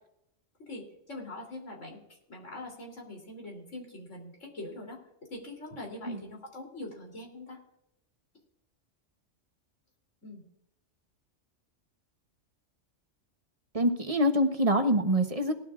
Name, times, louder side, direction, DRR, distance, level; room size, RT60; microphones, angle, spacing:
voice 1, 0.6-2.0 2.3-5.0 5.3-7.6 10.2-10.4, left 2 dB, 80° left, -1 dB, 3.7 m, -43 dB
voice 2, 13.7-15.5, equal, 30° right, 6 dB, 1.1 m, -25 dB
19.0 x 12.0 x 2.5 m, 0.81 s
omnidirectional pair, 1.3 m